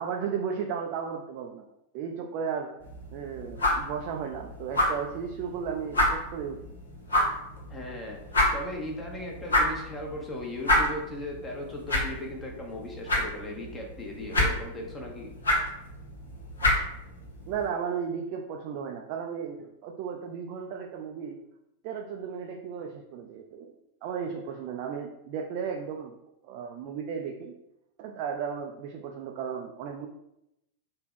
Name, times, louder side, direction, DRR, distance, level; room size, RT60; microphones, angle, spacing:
voice 1, 0.0-1.6 1.9-2.8 3.1-6.7 17.5-21.4 21.8-23.7 24.0-26.2 26.4-27.5 28.0-30.1, right 7 dB, 45° right, 2 dB, 0.3 m, -34 dB
sound 1, 2.8-17.7, left 1 dB, 75° left, 0.8 m, -30 dB
voice 2, 7.7-15.3, left 1 dB, 15° left, -1 dB, 0.8 m, -38 dB
3.4 x 2.2 x 3.5 m, 0.84 s
figure-of-eight pair, 90°, 0 cm